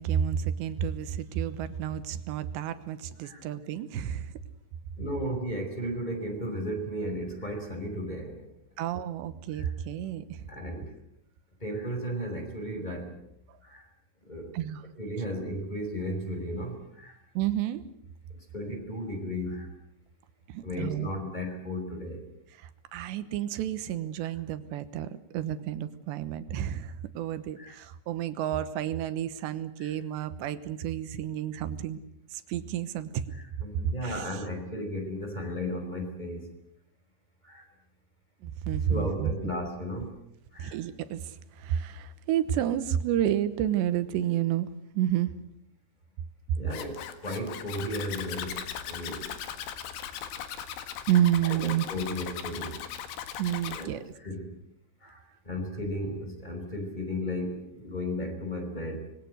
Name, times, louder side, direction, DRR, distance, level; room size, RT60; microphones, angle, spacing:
voice 1, 0.0-4.3 8.8-10.5 13.5-13.6 14.5-14.8 17.3-17.8 20.5-21.2 22.6-32.0 32.3-33.3 33.7-34.3 38.4-39.3 40.6-44.7 44.9-45.3 46.5-46.6 51.1-51.9 53.4-54.0, right 10 dB, 75° right, 12 dB, 3.2 m, -30 dB
voice 2, 5.0-8.5 9.5-9.7 10.5-10.9 11.6-13.2 13.6-13.8 14.2-14.5 15.0-17.2 18.5-19.7 20.6-22.3 27.6-27.7 29.8-29.9 33.3-36.5 37.4-37.6 38.9-40.1 40.5-40.8 46.6-49.3 51.4-52.8 53.5-53.9 54.2-54.5 55.0-59.1, equal, 10° left, 5 dB, 4.5 m, -35 dB
Zipper (clothing), 46.7-53.9, left 9 dB, 75° left, 4.1 m, -38 dB
26.0 x 22.0 x 7.9 m, 0.74 s
omnidirectional pair, 5.6 m